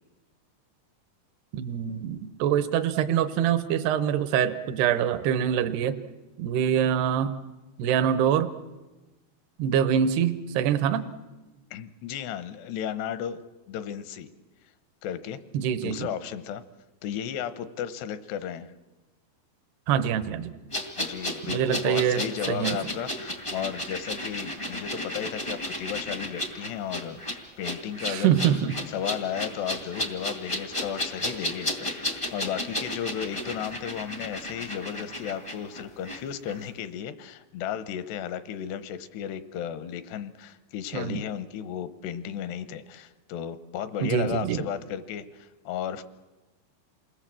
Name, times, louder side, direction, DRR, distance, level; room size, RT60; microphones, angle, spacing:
voice 1, 1.5-6.0 6.4-7.3 7.8-8.5 9.6-11.1 15.5-16.1 19.9-20.6 21.5-22.2 22.5-22.8 28.0-28.8 40.9-41.2 44.0-44.6, right 9 dB, 80° right, 10 dB, 2.9 m, -25 dB
voice 2, 11.7-13.4 13.7-14.3 15.0-15.4 15.8-16.6 17.0-18.7 21.0-27.2 27.6-28.4 28.9-46.0, left 9 dB, 80° left, 12 dB, 3.0 m, -34 dB
sound 1, 20.7-36.2 36.5-36.6, left 1 dB, 40° left, 0.4 m, -33 dB
28.5 x 20.5 x 7.6 m, 1.1 s
omnidirectional pair, 4.9 m